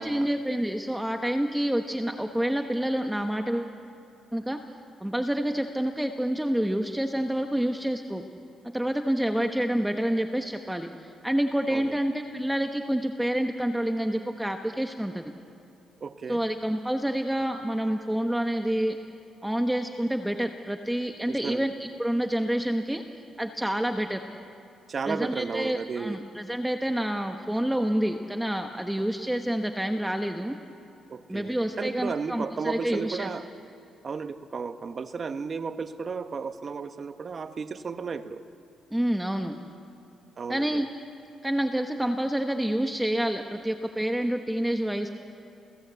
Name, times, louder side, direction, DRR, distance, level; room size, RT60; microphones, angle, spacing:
voice 1, 0.0-3.8 4.3-4.6 5.0-8.2 8.6-15.2 16.3-19.0 19.4-23.0 23.4-24.2 25.1-30.6 31.3-33.3 38.9-39.6 40.5-40.9 41.4-45.1, right 1 dB, 5° right, 5 dB, 1.2 m, -28 dB
voice 2, 16.0-16.4 21.3-21.7 24.9-26.2 31.1-33.5 34.0-38.4 40.4-40.9, right 5 dB, 40° right, 9 dB, 1.2 m, -34 dB
30.0 x 17.0 x 8.2 m, 2.6 s
cardioid pair, 95°, 0 cm